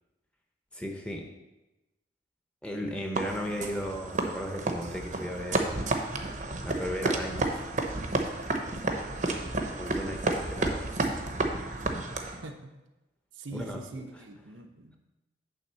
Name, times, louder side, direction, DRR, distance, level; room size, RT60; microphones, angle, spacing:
voice 1, 0.7-1.2 2.6-5.9 6.6-7.5 9.7-10.8 11.1-11.3 13.5-14.1, equal, 5° left, 2 dB, 0.8 m, -35 dB
sound 1, 3.1-12.4, right 2 dB, 40° right, 0.8 m, -31 dB
voice 2, 13.3-15.0, right 2 dB, 85° right, 4 dB, 0.9 m, -43 dB
8.9 x 3.6 x 6.8 m, 1.0 s
head